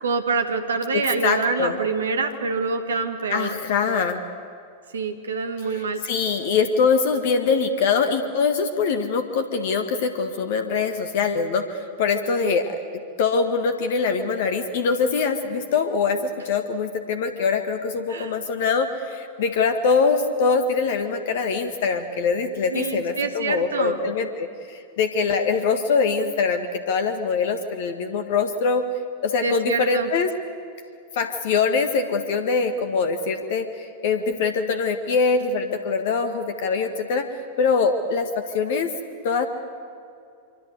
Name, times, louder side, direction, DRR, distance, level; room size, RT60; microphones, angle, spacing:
voice 1, 0.0-3.5 4.9-6.0 12.4-12.5 18.1-18.4 22.7-24.0 29.4-30.1, right 4 dB, 70° right, 8 dB, 2.2 m, -26 dB
voice 2, 0.9-1.8 3.3-4.2 5.7-12.7 13.2-28.8 29.2-30.3 31.1-37.3 37.6-38.9 39.2-39.5, left 5 dB, 55° left, 8 dB, 1.8 m, -23 dB
25.5 x 25.0 x 8.1 m, 2.4 s
figure-of-eight pair, 90°, 0 cm